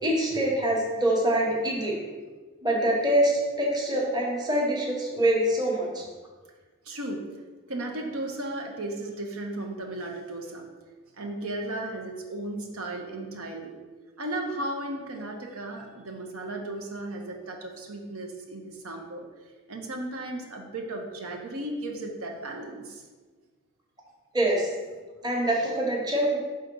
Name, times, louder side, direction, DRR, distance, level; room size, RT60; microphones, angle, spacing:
voice 1, 0.0-2.0 2.6-6.0 24.3-24.7 25.2-26.4, right 1 dB, 20° right, -2 dB, 1.1 m, -25 dB
voice 2, 6.8-7.2 7.7-10.7 11.2-13.8 14.2-19.3 19.7-23.0, right 1 dB, 80° right, 2 dB, 0.8 m, -35 dB
5.7 x 3.7 x 5.3 m, 1.4 s
head